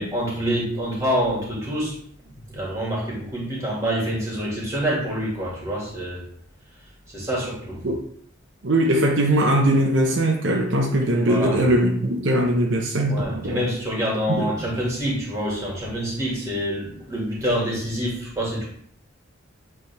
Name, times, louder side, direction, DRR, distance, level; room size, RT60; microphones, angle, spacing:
voice 1, 0.0-1.9 2.2-2.3 2.5-6.2 7.1-7.8 11.3-11.6 13.1-18.7, equal, 15° right, -4 dB, 2.2 m, -26 dB
voice 2, 8.6-13.6 14.3-14.5, right 1 dB, 65° right, 0 dB, 0.8 m, -20 dB
8.0 x 3.5 x 3.4 m, 0.63 s
head